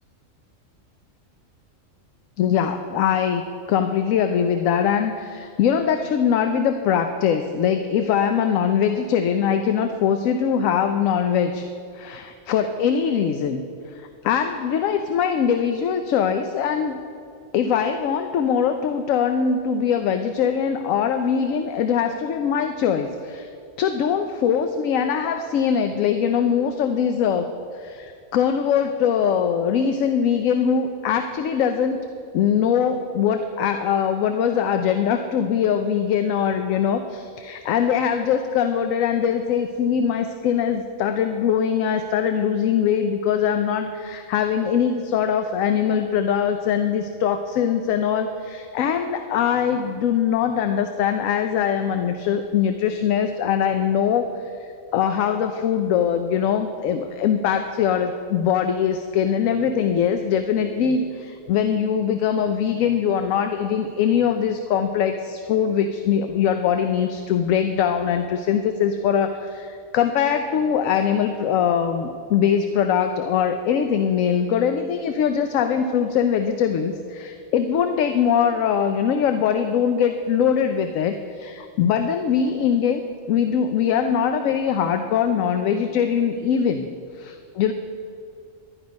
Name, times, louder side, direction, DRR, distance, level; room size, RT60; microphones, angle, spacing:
voice 1, 2.4-3.4 3.7-11.7 11.9-13.6 13.9-17.0 17.5-23.5 23.8-27.5 27.7-32.0 32.3-86.9 87.1-87.7, left 8 dB, 80° left, 7 dB, 1.0 m, -22 dB
11.5 x 10.0 x 5.2 m, 2.4 s
omnidirectional pair, 1.4 m